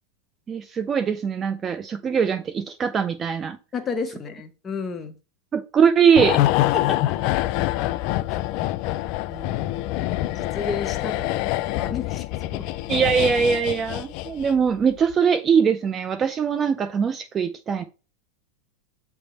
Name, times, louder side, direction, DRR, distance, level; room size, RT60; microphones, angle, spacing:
voice 1, 0.5-3.6 5.5-6.4 12.9-17.8, right 6 dB, 25° right, 0.5 m, -21 dB
voice 2, 3.7-5.1 6.7-7.2 8.3-8.4 9.3-10.0 10.3-12.3 12.5-12.7, left 5 dB, 20° left, 1.0 m, -32 dB
sound 1, 6.2-14.7 15.0-15.1, left 15 dB, 50° left, 0.4 m, -25 dB
7.9 x 3.5 x 4.1 m
supercardioid pair, 130°, 0 cm